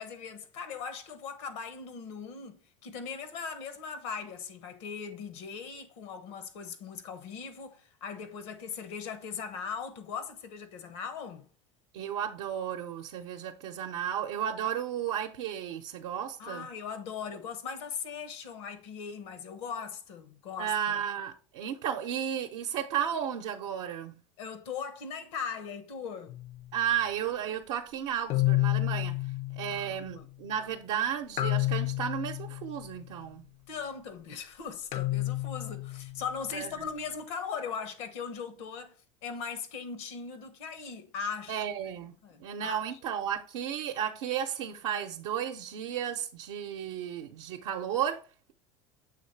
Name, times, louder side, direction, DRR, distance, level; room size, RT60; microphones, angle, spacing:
voice 1, 0.0-11.5 16.4-21.0 24.4-26.3 29.7-30.3 33.7-38.9 39.2-41.6 42.2-42.8, left 6 dB, 75° left, 1.1 m, -39 dB
voice 2, 11.9-16.7 20.6-24.1 26.7-29.3 29.6-33.5 36.5-36.7 41.5-42.2 42.4-48.2, right 9 dB, 75° right, 0.7 m, -33 dB
sound 1, 26.3-26.6 28.3-30.2 31.4-33.0 34.9-36.4, left 17 dB, 50° left, 0.5 m, -30 dB
7.1 x 3.2 x 4.4 m
supercardioid pair, 100°, 16 cm